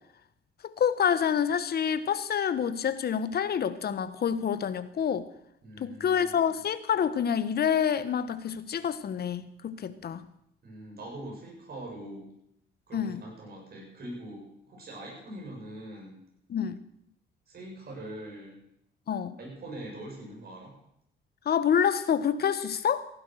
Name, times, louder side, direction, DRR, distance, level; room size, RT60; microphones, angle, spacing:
voice 1, 0.6-5.3 5.8-10.3 12.9-13.2 16.5-16.8 19.1-19.4 21.4-23.1, left 8 dB, 50° left, 13 dB, 1.2 m, -27 dB
voice 2, 5.6-6.5 10.6-12.3 12.9-16.2 17.5-18.6 19.4-20.7, right 1 dB, 50° right, -1 dB, 7.7 m, -43 dB
15.0 x 11.5 x 6.4 m, 0.76 s
cardioid pair, 90°, 20 cm